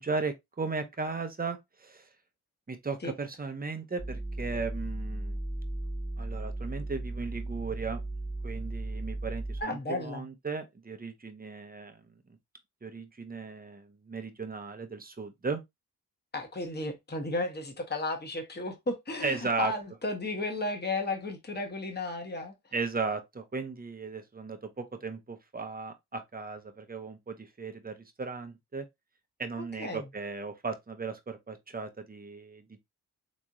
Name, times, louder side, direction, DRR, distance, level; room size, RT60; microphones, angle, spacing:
voice 1, 0.0-2.1 2.7-5.4 6.2-8.0 8.4-12.1 12.8-15.6 19.2-19.7 22.7-28.9 29.4-32.8, right 4 dB, 25° right, 0.9 m, -36 dB
sound 1, 4.0-9.6, right 2 dB, 10° left, 0.9 m, -36 dB
voice 2, 9.6-10.3 16.3-22.5 29.8-30.1, left 2 dB, 25° left, 1.1 m, -34 dB
3.4 x 3.1 x 2.6 m
supercardioid pair, 45°, 39 cm